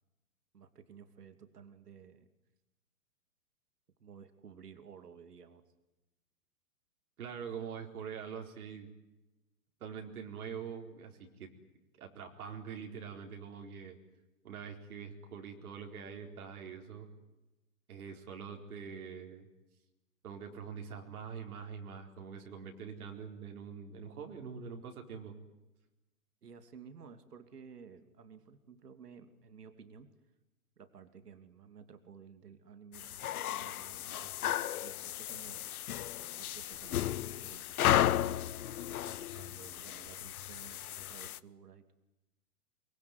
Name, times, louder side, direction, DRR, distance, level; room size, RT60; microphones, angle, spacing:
voice 1, 0.5-2.3 4.0-5.6 26.4-30.1 30.8-35.7 36.3-38.8 39.1-41.9, right 6 dB, 85° right, 9 dB, 2.9 m, -54 dB
voice 2, 7.2-8.9 9.8-11.5 11.9-14.0 14.4-17.1 17.9-19.5 20.2-25.3, right 6 dB, 70° right, 3 dB, 4.6 m, -44 dB
sound 1, 32.9-41.4, left 12 dB, 70° left, 1.0 m, -34 dB
24.0 x 23.5 x 9.6 m, 1.0 s
hypercardioid pair, 130°, 46 cm